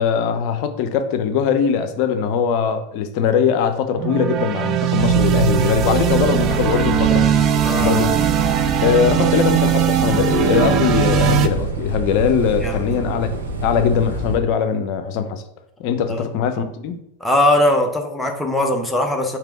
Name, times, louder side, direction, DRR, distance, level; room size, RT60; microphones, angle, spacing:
voice 1, 0.0-7.3 7.8-8.1 8.8-15.4 15.8-17.0, left 7 dB, 55° left, 0.6 m, -20 dB
sound 1, 3.9-11.5, right 10 dB, 40° right, 0.4 m, -19 dB
sound 2, 5.0-14.4, right 2 dB, 90° right, 0.7 m, -27 dB
voice 2, 7.6-8.0 12.6-13.1 16.1-16.3 17.2-19.4, left 1 dB, 5° left, 0.6 m, -20 dB
3.3 x 3.0 x 4.6 m
hypercardioid pair, 100°, 0 cm